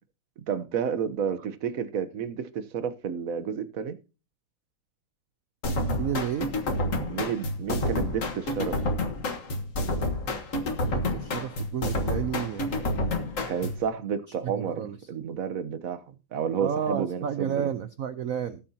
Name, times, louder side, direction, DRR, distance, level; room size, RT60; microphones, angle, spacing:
voice 1, 0.5-4.0 7.0-8.8 13.5-16.0 16.3-17.7, right 7 dB, 50° right, 1.1 m, -31 dB
sound 1, 5.6-13.9, left 1 dB, 40° left, 1.6 m, -29 dB
voice 2, 6.0-6.5 10.8-13.2 14.3-15.0 16.6-18.6, right 8 dB, 90° right, 0.7 m, -31 dB
18.0 x 7.6 x 2.8 m
omnidirectional pair, 2.4 m